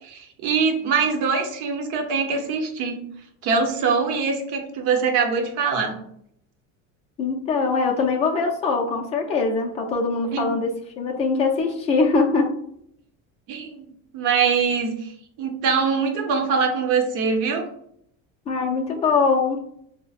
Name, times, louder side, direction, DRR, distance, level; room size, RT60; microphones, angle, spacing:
voice 1, 0.0-3.0 3.4-6.0 10.3-10.6 13.5-13.8 14.1-15.1 15.4-17.7, right 5 dB, 60° right, 3 dB, 0.8 m, -23 dB
voice 2, 7.2-12.5 18.5-19.6, left 4 dB, 20° left, 2 dB, 0.4 m, -22 dB
5.3 x 2.1 x 2.4 m, 0.69 s
cardioid pair, 160°, 35 cm